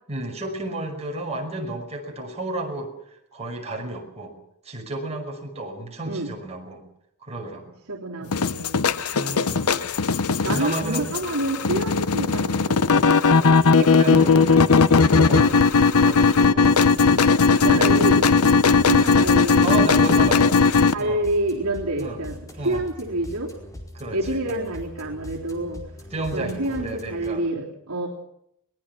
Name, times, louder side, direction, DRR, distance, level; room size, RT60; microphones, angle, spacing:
voice 1, 0.1-2.9 3.3-4.3 4.6-6.8 7.2-7.8 8.2-8.4 9.1-9.9 10.4-11.1 14.0-14.4 15.3-15.6 16.0-16.8 17.5-17.9 19.6-20.6 21.0-21.3 22.0-22.2 22.6-22.8 23.9-24.4 26.1-27.5, right 2 dB, 30° right, 1 dB, 5.6 m, -32 dB
voice 2, 7.9-8.9 9.2-9.3 10.4-13.0 13.4-14.7 15.1-15.7 17.5-20.6 20.9-23.5 24.1-25.8 26.3-28.1, right 1 dB, 70° right, -4 dB, 3.5 m, -28 dB
sound 1, 8.3-20.9, left 4 dB, 80° left, 0.9 m, -18 dB
sound 2, 18.7-27.3, left 1 dB, 15° left, 4.7 m, -41 dB
22.5 x 21.0 x 6.1 m, 0.75 s
head